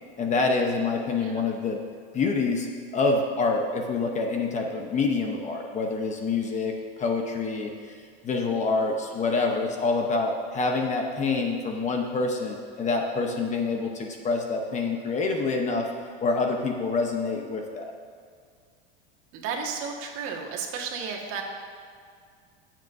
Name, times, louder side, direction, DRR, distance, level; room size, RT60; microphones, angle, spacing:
voice 1, 0.0-1.8 2.1-2.7 2.9-6.7 7.0-8.0 8.2-15.9 16.2-17.9, left 3 dB, 25° left, 2 dB, 0.9 m, -26 dB
voice 2, 19.3-21.4, right 6 dB, 50° right, 0 dB, 1.7 m, -33 dB
21.0 x 7.5 x 2.7 m, 2.1 s
supercardioid pair, 145°, 29 cm